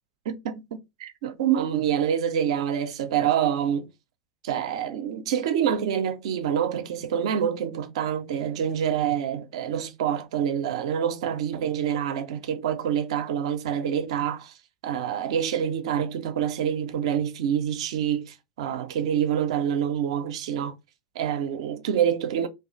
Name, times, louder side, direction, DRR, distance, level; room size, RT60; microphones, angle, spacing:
voice 1, 0.3-0.6 1.0-3.9 4.4-14.6 14.8-20.8 21.1-22.5, right 9 dB, 65° right, 0.4 m, -26 dB
2.3 x 2.2 x 2.4 m
figure-of-eight pair, 85°, 3 cm